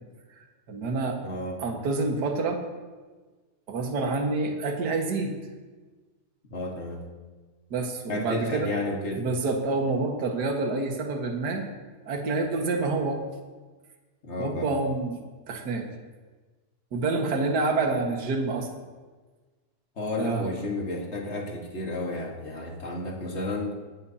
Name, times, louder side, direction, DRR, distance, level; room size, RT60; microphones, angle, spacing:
voice 1, 0.7-1.2 1.6-2.6 3.7-5.4 7.7-8.7 9.2-11.7 12.1-13.2 14.4-15.2 15.5-15.9 16.9-18.7 20.2-20.5, right 3 dB, 40° right, 2 dB, 1.6 m, -27 dB
voice 2, 1.2-1.6 6.5-7.1 8.1-9.3 14.2-14.7 20.0-23.8, left 1 dB, 35° left, -1 dB, 1.1 m, -31 dB
20.0 x 16.5 x 2.9 m, 1.4 s
omnidirectional pair, 3.7 m